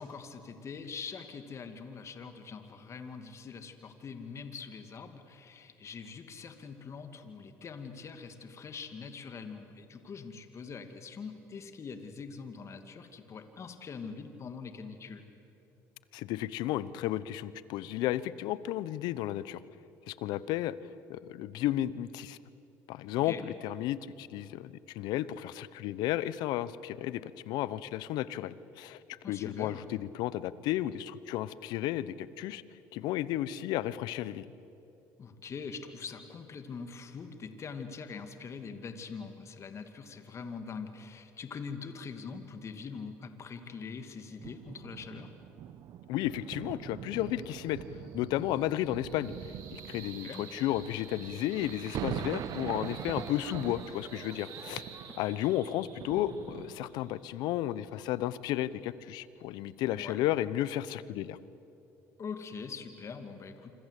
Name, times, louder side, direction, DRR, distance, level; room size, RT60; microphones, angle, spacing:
voice 1, 0.0-15.2 23.2-23.4 29.2-29.8 35.2-45.3 50.2-50.5 59.9-60.2 62.2-63.7, left 5 dB, 40° left, 7 dB, 2.5 m, -43 dB
voice 2, 16.1-19.6 20.1-20.7 21.1-22.4 22.9-32.6 32.9-34.4 46.1-47.8 48.1-49.3 49.7-54.8 55.2-61.4, left 13 dB, 75° left, 17 dB, 0.9 m, -33 dB
sound 1, 44.4-57.2 57.9-58.0, right 10 dB, 60° right, 1.1 m, -43 dB
sound 2, 47.1-59.7, right 7 dB, 75° right, 4.4 m, -52 dB
sound 3, 50.2-55.3, right 6 dB, 40° right, 2.0 m, -55 dB
27.0 x 25.5 x 8.4 m, 2.8 s
supercardioid pair, 85°, 7 cm